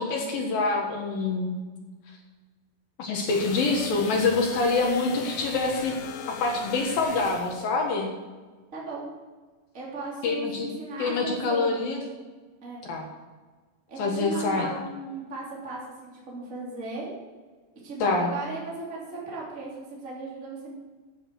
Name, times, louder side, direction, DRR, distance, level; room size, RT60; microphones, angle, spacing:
voice 1, 0.0-1.6 3.0-6.0 6.4-8.1 10.2-10.7 11.0-12.0 12.9-13.1 14.0-14.7 18.0-18.3, left 3 dB, 65° left, 1 dB, 2.9 m, -26 dB
sound 1, 3.3-7.7, left 7 dB, 85° left, 1.7 m, -40 dB
voice 2, 8.7-9.1 9.7-11.7 12.6-12.8 13.9-17.1 17.8-20.7, right 2 dB, 20° right, -5 dB, 2.9 m, -36 dB
10.5 x 9.0 x 6.2 m, 1.3 s
omnidirectional pair, 4.9 m